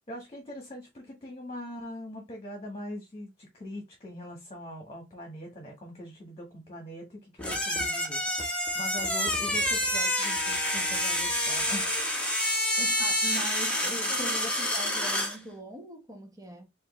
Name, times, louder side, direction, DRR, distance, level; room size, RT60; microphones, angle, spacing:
voice 1, 0.1-12.0 12.8-12.9 14.1-14.5, left 1 dB, 30° left, 1.4 m, -42 dB
sound 1, 7.4-15.4, left 1 dB, 5° left, 1.1 m, -28 dB
voice 2, 13.0-16.6, right 1 dB, 20° right, 1.2 m, -41 dB
4.9 x 2.8 x 3.1 m
head